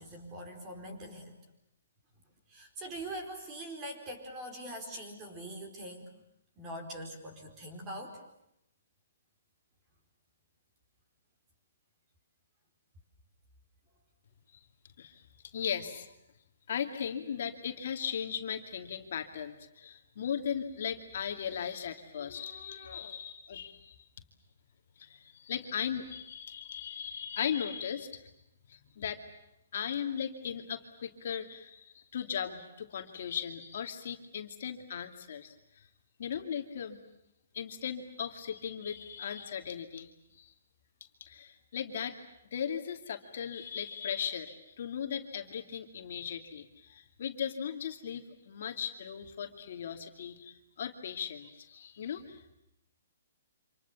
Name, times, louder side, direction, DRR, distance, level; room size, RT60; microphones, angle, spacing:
voice 1, 0.0-1.3 2.5-6.1 6.6-8.2, right 1 dB, 15° right, 4 dB, 4.5 m, -43 dB
voice 2, 15.0-16.1 16.7-24.0 25.0-28.3 28.7-29.2 29.7-35.9 36.2-37.0 37.5-40.1 40.4-40.5 41.2-42.2 42.5-52.6, left 8 dB, 45° left, 5 dB, 2.6 m, -37 dB
29.0 x 27.0 x 7.2 m, 0.82 s
hypercardioid pair, 175°, 0 cm